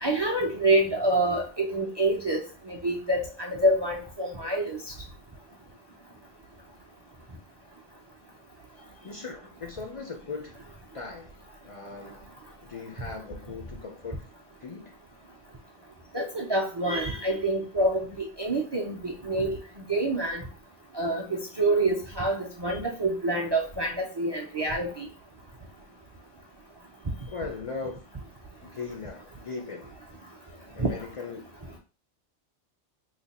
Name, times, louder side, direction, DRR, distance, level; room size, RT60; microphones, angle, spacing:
voice 1, 0.0-2.4 2.7-4.8 16.1-19.6 19.9-20.4 20.9-25.1 30.8-30.9, right 1 dB, 45° right, -1 dB, 0.3 m, -27 dB
voice 2, 9.0-10.6 10.9-11.3 11.6-12.3 12.6-14.3 14.6-14.9 27.3-28.0 28.6-29.9 30.7-31.4, left 4 dB, 60° left, 3 dB, 0.3 m, -38 dB
3.2 x 2.1 x 4.0 m, 0.35 s
omnidirectional pair, 1.2 m